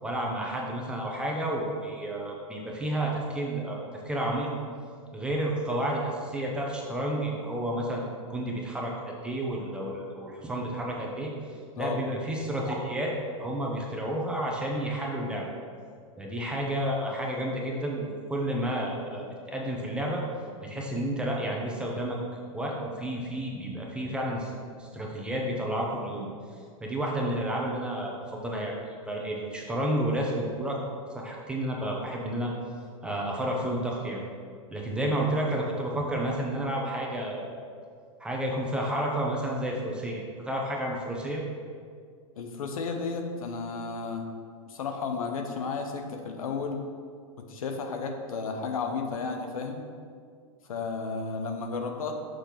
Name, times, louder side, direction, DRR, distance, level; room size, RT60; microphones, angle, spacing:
voice 1, 0.0-4.5 5.1-11.3 11.8-13.1 13.4-15.4 16.2-20.2 20.6-22.2 22.5-26.3 26.8-28.8 29.1-30.8 31.1-32.5 33.0-34.2 34.7-37.5 38.2-41.4, right 1 dB, 5° right, -2 dB, 0.9 m, -31 dB
voice 2, 11.8-12.1 42.4-44.3 44.7-46.8 47.4-49.8 50.7-52.1, left 4 dB, 85° left, 4 dB, 0.9 m, -33 dB
6.4 x 3.3 x 5.9 m, 2.1 s
hypercardioid pair, 135°, 18 cm